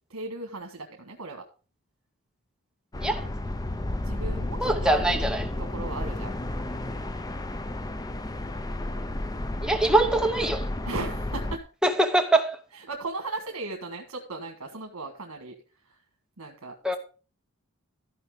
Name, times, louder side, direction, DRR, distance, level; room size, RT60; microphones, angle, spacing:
voice 1, 0.1-1.4 3.0-3.2 4.0-5.2 5.6-6.3 10.8-11.6 12.7-16.0 16.4-17.0, right 3 dB, 75° right, 1.6 m, -37 dB
sound 1, 2.9-11.6, left 1 dB, 15° left, 0.5 m, -32 dB
voice 2, 4.6-5.4 9.6-10.7 11.8-12.6 16.8-17.0, right 1 dB, 5° right, 0.9 m, -23 dB
14.0 x 5.6 x 5.0 m
head